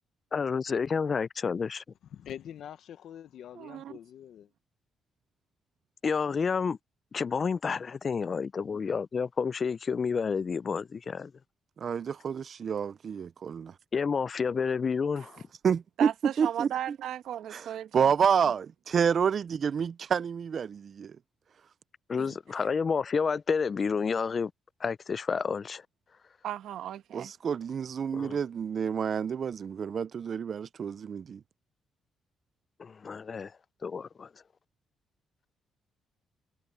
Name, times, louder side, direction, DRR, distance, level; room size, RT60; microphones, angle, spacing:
voice 1, 0.3-1.8 6.0-6.8 7.1-11.3 13.9-15.4 22.1-24.5 24.8-25.8 28.1-28.4 32.8-33.5 33.8-34.3, left 5 dB, 40° left, 0.4 m, -30 dB
voice 2, 2.1-4.5, left 10 dB, 70° left, 1.0 m, -44 dB
voice 3, 3.5-3.9 15.2-15.3 16.0-18.1 22.2-22.3 26.4-27.3, right 11 dB, 75° right, 1.2 m, -36 dB
voice 4, 11.8-13.7 15.6-16.1 16.4-16.7 17.5-17.7 17.9-21.2 27.1-31.4, right 7 dB, 50° right, 0.4 m, -29 dB
cardioid pair, 90°, 0 cm